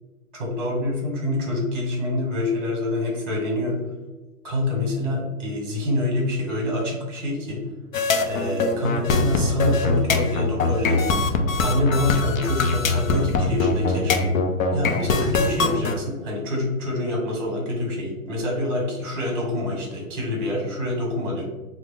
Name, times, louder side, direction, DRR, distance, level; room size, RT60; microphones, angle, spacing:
voice 1, 0.3-3.8 4.4-7.6 8.2-11.0 11.6-14.3 14.7-21.4, left 1 dB, 30° right, -1 dB, 0.9 m, -26 dB
sound 1, 7.9-16.0, left 3 dB, 65° left, 0.5 m, -22 dB
3.4 x 2.0 x 3.4 m, 1.2 s
hypercardioid pair, 180°, 46 cm